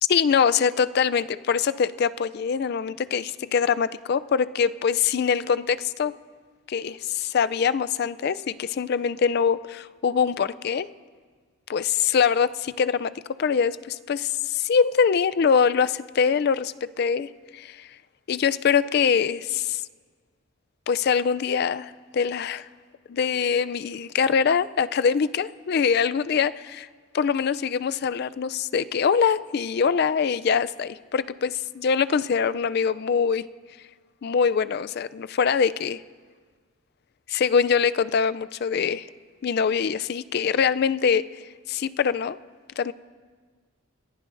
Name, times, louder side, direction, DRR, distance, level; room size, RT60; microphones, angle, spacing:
voice 1, 0.1-6.1 6.7-10.9 11.7-13.1 13.4-17.9 18.3-19.8 20.9-22.7 23.1-26.9 27.1-33.5 34.2-36.0 37.3-39.1 39.4-41.2 41.7-42.4 42.8-42.9, left 6 dB, 50° left, 15 dB, 0.3 m, -23 dB
24.5 x 15.5 x 2.6 m, 1.5 s
head